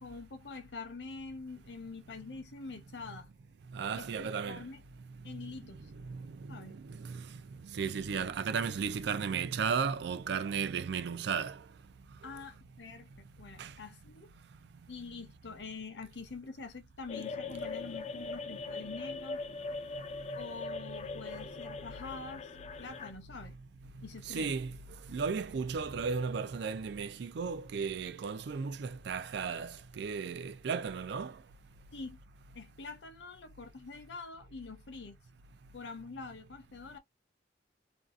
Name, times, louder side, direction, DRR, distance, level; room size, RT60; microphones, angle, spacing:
voice 1, 0.0-3.3 3.9-4.8 5.2-5.9 6.5-6.8 12.2-14.3 14.9-19.4 20.3-22.5 22.8-23.6 24.0-24.6 31.9-32.2 32.5-35.2 35.7-37.0, left 4 dB, 70° left, 0.8 m, -45 dB
voice 2, 3.7-4.6 5.4-5.5 6.1-7.4 7.7-11.6 12.2-12.3 13.6-13.7 21.3-21.4 24.2-24.8 25.1-31.4, right 5 dB, 65° right, 0.4 m, -35 dB
sound 1, 17.1-23.1, left 3 dB, 35° left, 0.3 m, -41 dB
2.6 x 2.4 x 2.4 m
head